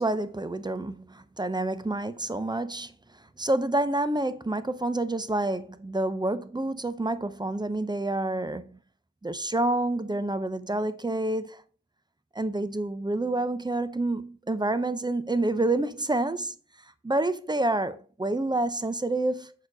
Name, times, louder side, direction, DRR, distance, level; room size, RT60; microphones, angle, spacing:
voice 1, 0.0-8.8 9.2-11.6 12.3-16.6 17.0-19.5, right 2 dB, 15° right, 0.6 m, -28 dB
6.3 x 4.3 x 4.0 m
cardioid pair, 60°, 31 cm